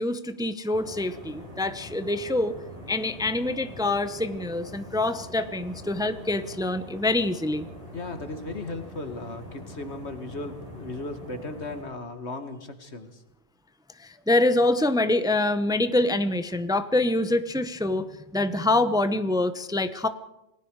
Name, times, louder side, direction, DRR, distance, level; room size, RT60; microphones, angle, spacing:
voice 1, 0.0-2.6 2.9-7.6 14.0-18.1 18.3-20.1, left 2 dB, 5° right, 10 dB, 0.9 m, -25 dB
sound 1, 0.7-11.8, equal, 30° right, 6.6 m, -43 dB
voice 2, 7.9-13.2, left 2 dB, 70° left, 8 dB, 2.3 m, -36 dB
27.5 x 20.0 x 4.8 m, 0.90 s
omnidirectional pair, 1.2 m